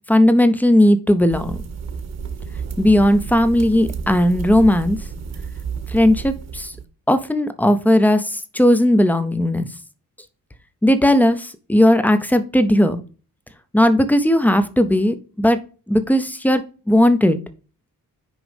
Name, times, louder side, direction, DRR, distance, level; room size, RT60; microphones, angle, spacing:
voice 1, 0.1-1.6 2.8-5.0 5.9-6.7 7.1-8.2 8.5-9.7 10.8-13.0 13.7-15.6 15.9-16.6 16.9-17.4, left 1 dB, 5° left, 11 dB, 0.5 m, -16 dB
sound 1, 1.3-6.8, right 6 dB, 50° right, 1.1 m, -31 dB
6.2 x 5.1 x 5.1 m, 0.36 s
wide cardioid pair, 170°, 34 cm